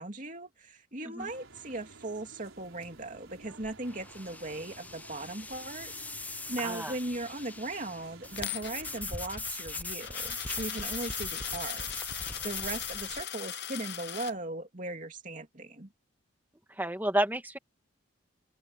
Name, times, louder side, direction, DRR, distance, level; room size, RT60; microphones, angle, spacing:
voice 1, 0.0-15.9, right 2 dB, 40° right, 2.6 m, -38 dB
sound 1, 1.2-9.1, right 3 dB, 80° right, 4.7 m, -54 dB
sound 2, 2.8-13.2, left 3 dB, 10° left, 0.5 m, -40 dB
voice 2, 6.6-6.9 16.8-17.6, right 1 dB, 10° right, 2.4 m, -30 dB
Coin (dropping), 8.4-14.3, left 12 dB, 55° left, 0.8 m, -40 dB
open air
head